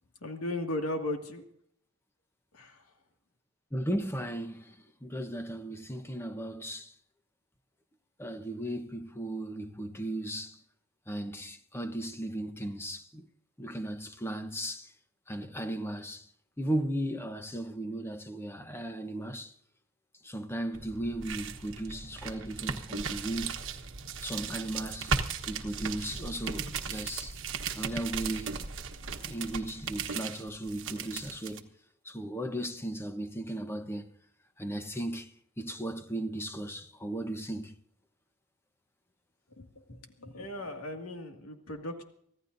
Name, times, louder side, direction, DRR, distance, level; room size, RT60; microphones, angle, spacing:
voice 1, 0.2-1.4 2.5-2.8 39.5-42.0, left 1 dB, 85° left, 2.2 m, -37 dB
voice 2, 3.7-4.8 5.0-6.9 8.2-10.6 11.1-13.3 13.6-14.9 15.3-16.3 16.6-19.5 20.2-23.6 24.2-25.1 25.5-27.4 27.7-28.6 29.3-31.7 32.0-34.1 34.6-35.3 35.6-37.8, right 1 dB, 10° left, 1.0 m, -36 dB
sound 1, 20.7-31.6, right 5 dB, 60° right, 1.2 m, -37 dB
25.0 x 15.0 x 2.7 m
head